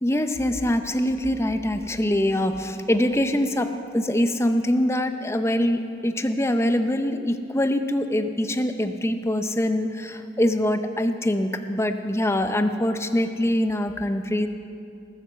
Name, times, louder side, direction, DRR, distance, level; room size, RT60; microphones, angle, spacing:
voice 1, 0.0-14.5, left 1 dB, 15° left, 8 dB, 0.6 m, -24 dB
20.0 x 7.7 x 6.8 m, 2.7 s
head